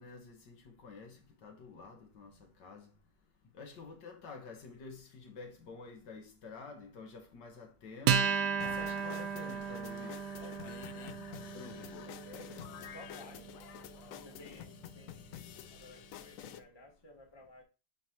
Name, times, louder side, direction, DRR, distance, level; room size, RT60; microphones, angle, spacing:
voice 1, 0.0-2.9 3.5-10.2, left 4 dB, 70° left, 1.8 m, -50 dB
Acoustic guitar, 8.1-14.9, right 7 dB, 70° right, 1.2 m, -35 dB
sound 1, 8.6-16.6, left 10 dB, 85° left, 0.7 m, -48 dB
voice 2, 10.4-13.5 14.1-15.4 15.7-17.6, left 2 dB, 15° left, 1.0 m, -56 dB
8.9 x 3.5 x 3.0 m
omnidirectional pair, 2.0 m